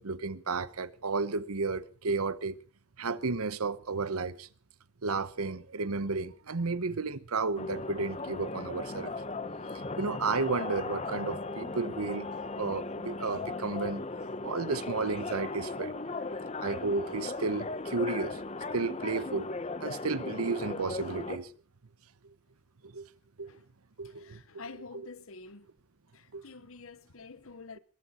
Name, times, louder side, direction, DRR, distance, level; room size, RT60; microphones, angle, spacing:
voice 1, 0.0-2.6 3.0-4.5 5.0-9.1 10.0-12.3 12.6-14.0 14.4-16.2 16.6-18.4 18.7-19.5 19.8-21.5 22.8-23.1 23.4-23.5 24.0-24.4 26.3-26.4, right 4 dB, 90° right, 1.0 m, -32 dB
sound 1, 7.6-21.4, left 3 dB, 30° left, 0.9 m, -37 dB
voice 2, 24.0-25.7 26.1-27.8, left 4 dB, 70° left, 1.0 m, -48 dB
22.0 x 14.5 x 4.3 m
head